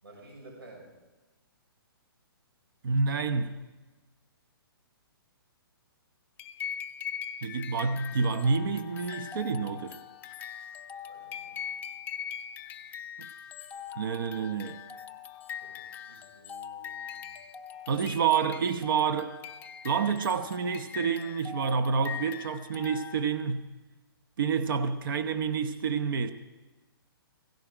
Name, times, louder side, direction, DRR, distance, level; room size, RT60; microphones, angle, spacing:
voice 1, 0.0-0.9 11.1-11.6 15.5-17.3, right 2 dB, 85° right, 6.8 m, -52 dB
voice 2, 2.8-3.6 7.4-10.0 13.2-13.3 14.0-14.8 17.9-19.3 19.8-23.7 24.4-26.3, right 5 dB, 60° right, 1.0 m, -28 dB
sound 1, 6.4-23.4, left 8 dB, 15° left, 0.7 m, -41 dB
16.5 x 16.0 x 5.0 m
hypercardioid pair, 140°, 13 cm